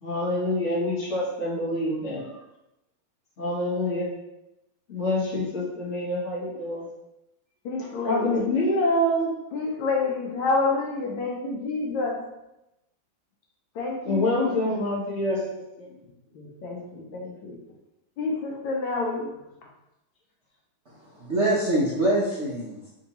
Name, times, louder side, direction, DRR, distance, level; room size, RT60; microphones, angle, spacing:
voice 1, 0.0-2.3 3.4-4.1 4.9-6.9 8.0-9.3 11.0-11.1 14.0-15.9, left 1 dB, 40° left, -7 dB, 1.5 m, -26 dB
voice 2, 7.6-8.7 9.5-12.2 13.7-14.8 16.3-17.6 18.2-19.3, left 3 dB, 75° left, -1 dB, 1.5 m, -29 dB
voice 3, 20.9-22.9, right 1 dB, 60° right, -6 dB, 0.7 m, -25 dB
4.5 x 3.9 x 2.9 m, 0.91 s
omnidirectional pair, 2.3 m